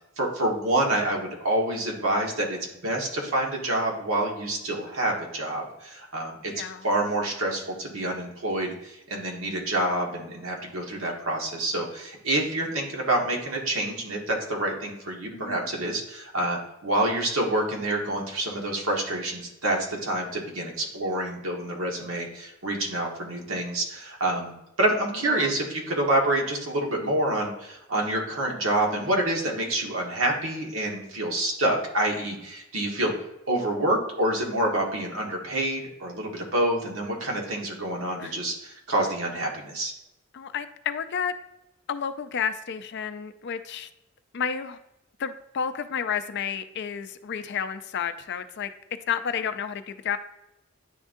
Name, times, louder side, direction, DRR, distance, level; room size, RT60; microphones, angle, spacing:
voice 1, 0.2-24.5 24.8-33.1 33.5-39.9, right 1 dB, 70° right, 0 dB, 1.4 m, -27 dB
voice 2, 6.5-6.9 15.3-15.7 25.3-25.5 38.2-38.3 40.3-41.3 41.9-43.9 44.3-44.8 45.2-48.7 49.1-50.2, left 7 dB, 55° left, 11 dB, 0.4 m, -31 dB
10.0 x 3.7 x 2.6 m, 0.91 s
head